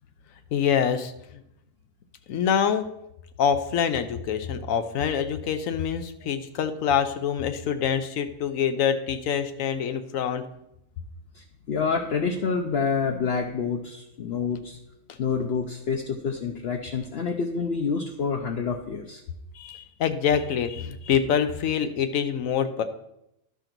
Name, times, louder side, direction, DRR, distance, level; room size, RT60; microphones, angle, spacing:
voice 1, 0.5-1.1 2.3-2.9 3.4-10.4 19.5-22.8, left 8 dB, 80° left, 10 dB, 1.1 m, -25 dB
voice 2, 11.3-14.8 15.2-19.2, left 5 dB, 55° left, 3 dB, 0.8 m, -28 dB
11.5 x 3.9 x 5.9 m, 0.83 s
omnidirectional pair, 1.4 m